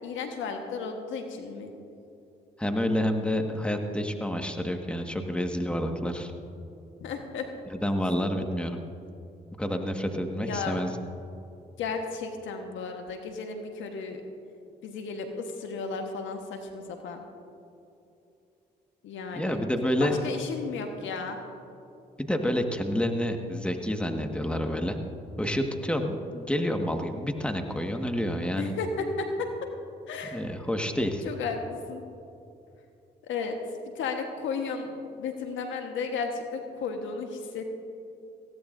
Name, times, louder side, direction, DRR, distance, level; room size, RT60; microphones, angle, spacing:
voice 1, 0.0-1.7 7.0-7.5 10.5-10.8 11.8-14.2 14.8-17.2 19.0-19.6 20.0-21.4 28.6-29.7 30.1-30.4 31.2-32.0 33.2-33.6 33.9-37.7, left 4 dB, 75° left, 4 dB, 1.4 m, -34 dB
voice 2, 2.6-6.3 7.7-8.8 9.6-10.9 19.3-20.2 22.2-25.0 25.4-28.7 30.3-31.2, equal, 5° left, 4 dB, 1.7 m, -28 dB
19.5 x 16.0 x 2.7 m, 2.7 s
hypercardioid pair, 45°, 20 cm